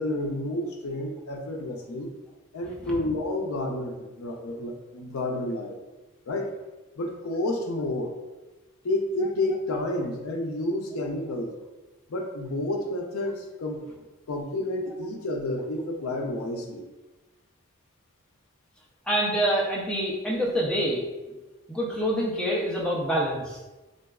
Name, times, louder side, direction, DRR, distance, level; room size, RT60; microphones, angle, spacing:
voice 1, 0.0-2.1 2.5-5.8 6.3-6.5 7.0-8.2 8.8-11.5 12.1-13.8 14.3-16.9, left 1 dB, 85° left, 2 dB, 0.5 m, -30 dB
voice 2, 19.1-21.1 21.7-23.6, equal, 5° left, -4 dB, 0.4 m, -26 dB
3.8 x 2.2 x 2.3 m, 1.1 s
head